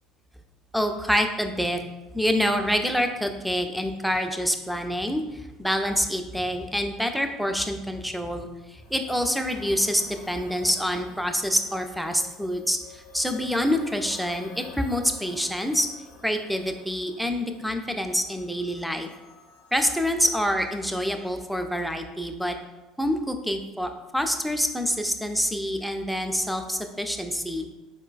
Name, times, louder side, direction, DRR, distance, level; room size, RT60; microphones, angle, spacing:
voice 1, 0.7-1.8 2.1-15.9 16.2-19.1 19.7-22.5 23.0-27.7, equal, ahead, 5 dB, 0.3 m, -26 dB
sound 1, 8.6-21.4, left 4 dB, 65° left, 0.5 m, -49 dB
4.2 x 2.2 x 2.3 m, 1.1 s
figure-of-eight pair, 60°, 0 cm